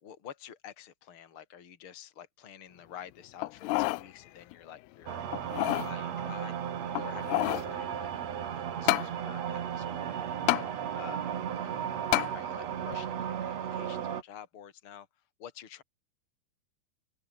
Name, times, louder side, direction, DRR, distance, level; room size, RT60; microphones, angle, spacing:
voice 1, 0.0-5.3 5.5-8.1 8.5-10.3 10.9-11.8 12.3-15.8, left 9 dB, 35° left, 3.2 m, -49 dB
sound 1, 3.4-4.1 4.5-4.6 5.3-5.9 6.9-7.7 8.9-9.1 10.5-10.7 12.1-12.3 12.9-13.0, left 21 dB, 90° left, 2.7 m, -28 dB
sound 2, 5.1-14.2, right 9 dB, 50° right, 2.5 m, -35 dB
open air
omnidirectional pair, 4.7 m